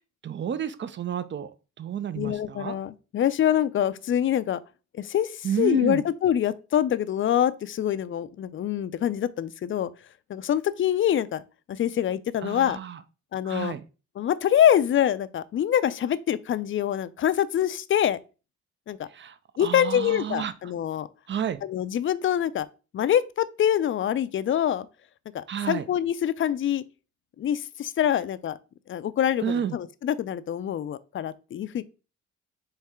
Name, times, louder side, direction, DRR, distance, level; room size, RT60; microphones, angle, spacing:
voice 1, 0.2-1.5 1.8-2.8 5.4-6.0 12.4-13.0 13.4-13.8 19.1-20.5 21.3-21.6 25.5-25.8 29.4-29.8, right 8 dB, 40° right, 0.5 m, -30 dB
voice 2, 2.2-4.6 4.9-9.9 10.3-11.4 11.7-12.8 13.3-13.8 14.2-18.2 18.9-19.1 19.6-21.1 21.6-22.7 22.9-24.9 25.3-26.8 27.4-28.6 28.9-31.8, left 10 dB, 45° left, 0.4 m, -25 dB
4.4 x 3.2 x 3.6 m
cardioid pair, 90°, 30 cm